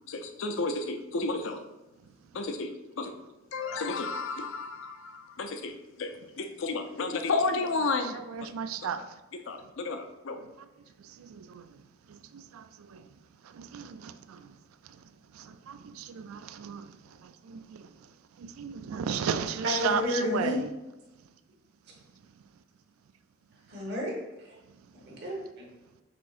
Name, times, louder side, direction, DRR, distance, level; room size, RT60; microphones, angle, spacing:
voice 1, 0.1-1.6 2.3-3.1 3.5-8.5 9.5-10.4, left 3 dB, 65° left, 7 dB, 0.5 m, -32 dB
voice 2, 7.8-9.0 11.2-11.6 12.1-12.6 12.9-13.0 13.5-14.4 15.4-16.9 17.2-17.9 18.4-20.7, right 7 dB, 90° right, 11 dB, 0.3 m, -35 dB
voice 3, 19.6-20.6 23.7-24.2 25.1-25.7, left 1 dB, 50° right, -2 dB, 1.3 m, -31 dB
5.9 x 3.6 x 2.5 m, 1.0 s
head